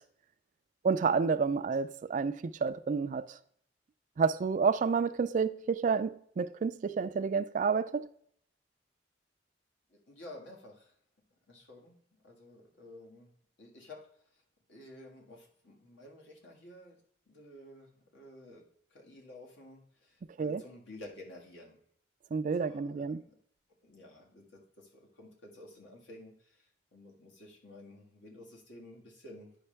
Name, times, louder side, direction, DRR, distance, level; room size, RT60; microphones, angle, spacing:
voice 1, 0.8-3.3 4.2-8.1 20.4-20.6 22.3-23.2, right 5 dB, 45° right, 0.3 m, -29 dB
voice 2, 9.9-11.0 11.5-13.3 13.6-14.1 14.3-14.4 14.7-17.0 17.3-18.6 18.9-21.8 22.6-23.4 23.8-29.6, left 1 dB, 75° left, 1.9 m, -52 dB
9.7 x 5.2 x 3.3 m
head